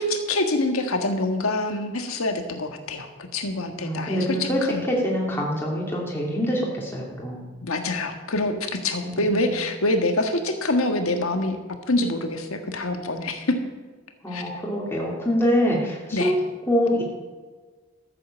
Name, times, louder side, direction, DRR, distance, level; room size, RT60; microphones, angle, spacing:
voice 1, 0.0-3.1 3.3-4.8 7.6-11.6 11.9-13.6 14.3-14.4 16.1-16.3, left 2 dB, 85° left, 6 dB, 1.6 m, -25 dB
voice 2, 3.8-4.6 4.9-7.5 9.0-9.6 14.2-16.4 16.7-17.0, equal, 10° left, -3 dB, 2.5 m, -25 dB
13.5 x 7.6 x 7.4 m, 1.4 s
head